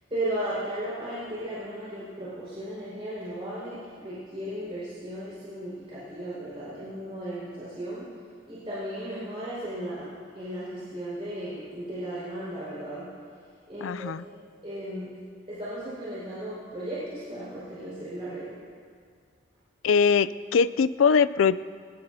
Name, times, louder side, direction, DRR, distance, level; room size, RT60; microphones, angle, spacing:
voice 1, 0.1-8.0 8.5-10.1 10.3-13.1 13.7-14.3 14.6-15.1 15.5-18.5, right 1 dB, 30° right, -10 dB, 5.2 m, -35 dB
voice 2, 13.8-14.2 19.8-21.6, left 6 dB, 85° left, 16 dB, 0.4 m, -22 dB
22.0 x 20.5 x 2.8 m, 2.1 s
head